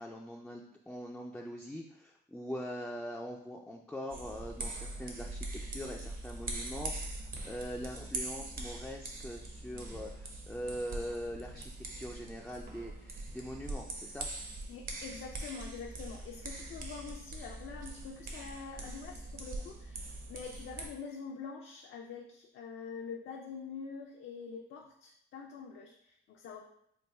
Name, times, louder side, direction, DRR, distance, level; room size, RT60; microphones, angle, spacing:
voice 1, 0.0-11.7 12.0-14.3, equal, 5° left, 0 dB, 0.3 m, -42 dB
sound 1, 4.1-20.9, right 2 dB, 45° right, 0.8 m, -42 dB
voice 2, 14.7-26.6, left 5 dB, 70° left, 0 dB, 0.5 m, -45 dB
3.4 x 2.2 x 4.1 m, 0.73 s
cardioid pair, 90°, 20 cm